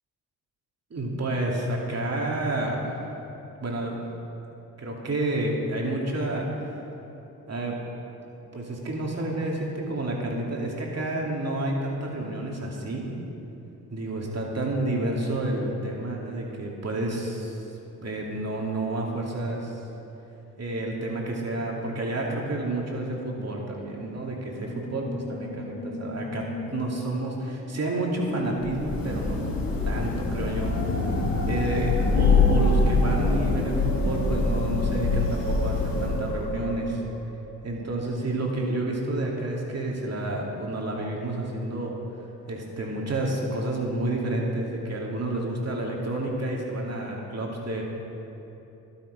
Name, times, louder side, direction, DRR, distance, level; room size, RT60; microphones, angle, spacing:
voice 1, 0.9-3.0 3.6-4.0 4.8-6.8 7.5-7.8 8.5-13.1 13.9-17.6 18.0-19.8 20.6-29.4 29.8-30.7 31.5-37.0 37.6-42.0 42.5-47.8, right 2 dB, 40° right, -1 dB, 2.6 m, -30 dB
Musical instrument, 24.4-37.4, left 1 dB, 30° left, 2.8 m, -37 dB
Thunder / Rain, 28.5-36.5, left 3 dB, 65° left, 1.9 m, -24 dB
12.0 x 9.0 x 5.2 m, 3.0 s
supercardioid pair, 55°, 38 cm